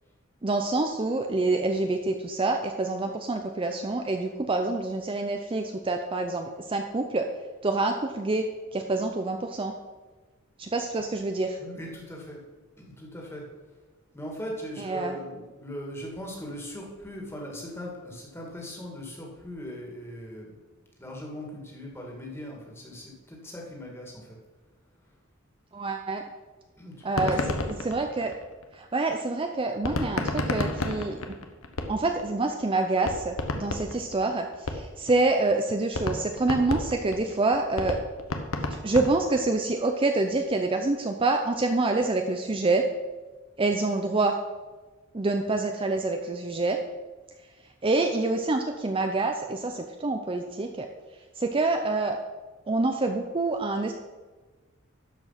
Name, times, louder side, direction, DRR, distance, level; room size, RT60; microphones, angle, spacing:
voice 1, 0.4-7.3 7.6-8.4 8.7-9.7 10.6-11.6 14.8-15.2 25.7-26.2 27.0-28.3 28.7-31.3 31.9-38.0 38.7-42.9 43.6-44.4 45.1-46.8 47.8-50.9 51.4-52.2 52.7-53.9, right 2 dB, 25° right, 4 dB, 0.5 m, -27 dB
voice 2, 11.6-12.4 12.8-13.4 14.1-20.5 21.0-24.4 26.8-27.6, equal, 10° left, -1 dB, 2.1 m, -39 dB
sound 1, 27.0-28.8 29.8-32.3 32.6-32.7 33.0-35.1 35.5-35.6 35.9-39.6, left 2 dB, 85° left, 1.1 m, -31 dB
12.5 x 5.1 x 5.7 m, 1.3 s
head